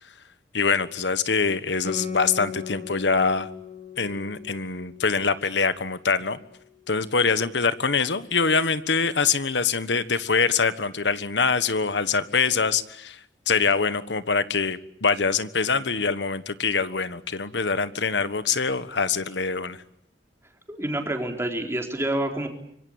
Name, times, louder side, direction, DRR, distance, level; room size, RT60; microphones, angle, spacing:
voice 1, 0.5-3.5 4.0-6.4 6.9-13.2 13.5-19.8, left 5 dB, 75° left, 13 dB, 1.4 m, -24 dB
Guitar, 1.8-6.8, left 6 dB, 45° left, 3.5 m, -38 dB
voice 2, 20.7-22.5, right 1 dB, 15° right, 3 dB, 4.0 m, -27 dB
25.5 x 23.5 x 8.8 m, 0.73 s
head